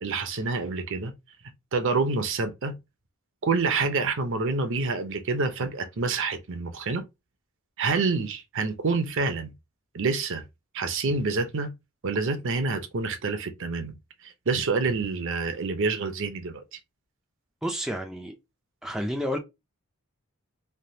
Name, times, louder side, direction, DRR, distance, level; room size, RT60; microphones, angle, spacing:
voice 1, 0.0-1.1 1.7-2.8 3.4-7.0 7.8-9.5 9.9-10.4 10.7-11.7 12.0-13.9 14.2-16.8, right 4 dB, 60° right, 0.7 m, -27 dB
voice 2, 17.6-18.3 18.8-19.4, equal, ahead, 0.4 m, -30 dB
3.3 x 2.3 x 2.7 m
head